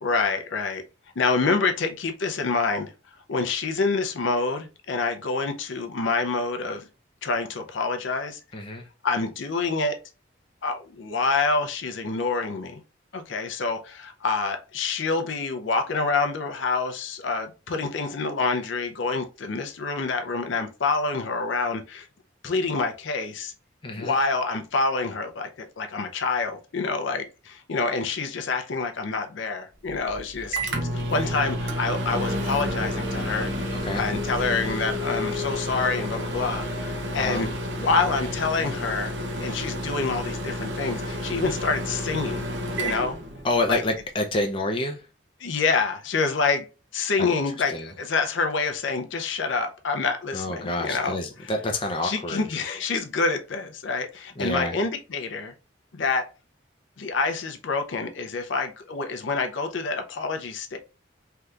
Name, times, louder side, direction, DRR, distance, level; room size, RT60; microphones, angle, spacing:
voice 1, 0.0-0.8 1.2-2.9 3.3-6.8 7.2-8.4 9.0-10.0 10.6-12.8 13.1-22.1 22.4-23.5 24.0-33.5 33.9-37.5 37.8-39.1 39.4-42.5 42.7-43.1 43.7-43.8 45.4-46.7 46.9-51.2 52.0-55.5 55.9-56.3 57.0-60.8, left 4 dB, 75° left, 0.6 m, -27 dB
voice 2, 8.5-8.8 23.8-24.1 33.8-34.0 37.1-37.4 43.4-45.0 47.7-47.9 50.3-52.4 54.4-54.8, left 2 dB, 25° left, 0.5 m, -28 dB
Microwave oven, 29.9-43.9, equal, 65° right, 0.7 m, -31 dB
sound 1, 32.1-37.3, left 3 dB, 25° right, 0.9 m, -34 dB
3.4 x 2.8 x 2.4 m
head